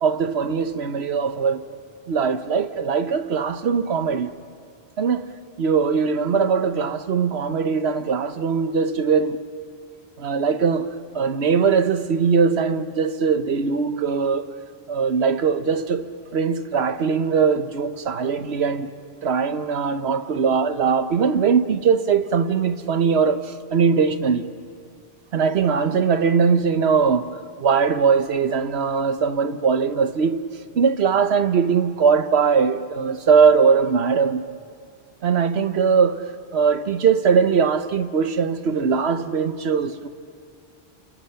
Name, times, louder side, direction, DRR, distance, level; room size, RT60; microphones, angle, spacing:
voice 1, 0.0-1.6 2.1-4.3 5.0-5.2 5.6-9.4 10.2-10.9 11.1-14.5 14.9-18.9 19.2-24.5 25.3-27.3 27.6-30.4 30.7-34.4 35.2-36.2 36.5-40.1, right 6 dB, 80° right, 1.2 m, -20 dB
29.0 x 28.5 x 5.7 m
omnidirectional pair, 1.1 m